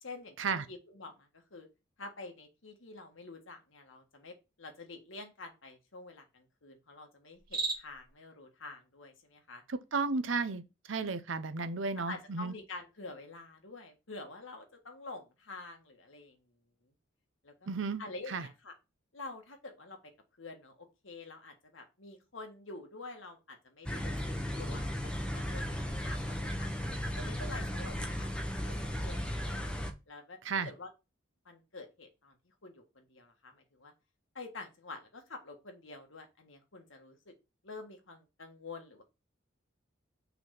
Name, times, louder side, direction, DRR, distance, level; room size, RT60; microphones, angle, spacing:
voice 1, 0.0-1.7 2.0-9.6 12.1-16.4 17.4-17.7 18.0-18.7 19.1-20.0 20.4-24.2 24.5-26.7 27.2-28.3 28.6-29.7 30.1-30.4 30.6-30.9 31.5-32.3 32.6-33.9 34.4-37.3 37.6-39.0, left 3 dB, 85° left, 1.7 m, -48 dB
Cricket, 7.3-8.1, right 3 dB, 50° right, 2.0 m, -36 dB
voice 2, 9.7-10.6 10.9-12.5 17.7-18.0 18.3-18.5 30.4-30.7, right 4 dB, 80° right, 0.7 m, -33 dB
sound 1, 23.9-29.9, left 1 dB, 5° left, 0.7 m, -35 dB
5.9 x 3.5 x 5.9 m
head